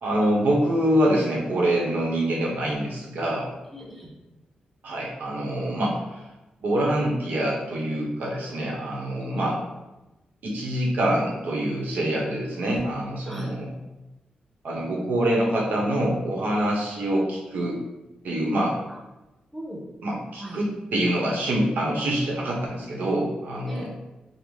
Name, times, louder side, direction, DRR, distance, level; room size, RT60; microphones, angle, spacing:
voice 1, 0.0-3.5 4.8-6.3 6.6-9.6 10.4-13.7 14.6-17.8 18.2-18.8 20.0-23.9, right 1 dB, 90° right, -3 dB, 0.8 m, -25 dB
voice 2, 3.7-4.1 9.2-9.5 13.3-13.5 19.5-19.8 20.4-20.6 23.7-23.9, equal, 5° left, -3 dB, 0.7 m, -38 dB
3.9 x 2.0 x 3.1 m, 1.0 s
wide cardioid pair, 130°, 3 cm